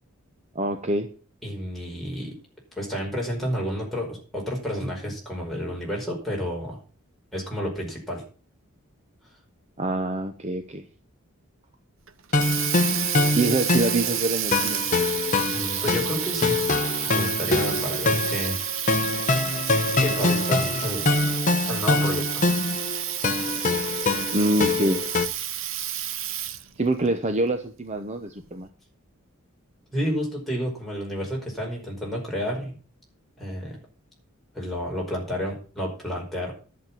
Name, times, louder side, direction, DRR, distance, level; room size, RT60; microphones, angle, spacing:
voice 1, 0.5-1.1 9.8-10.8 13.3-14.8 24.3-25.0 26.8-28.7, right 2 dB, 30° right, 7 dB, 0.9 m, -25 dB
voice 2, 1.4-2.3 2.8-6.8 7.3-8.2 15.5-16.6 17.1-18.6 20.0-21.1 21.7-22.4 29.9-32.8 33.4-33.8 34.5-36.5, equal, ahead, -3 dB, 5.2 m, -30 dB
Water tap faucet, 12.1-26.8, right 11 dB, 65° right, 0.9 m, -30 dB
sound 1, 12.3-25.3, left 3 dB, 35° left, 0.9 m, -24 dB
11.0 x 7.4 x 7.5 m, 0.39 s
head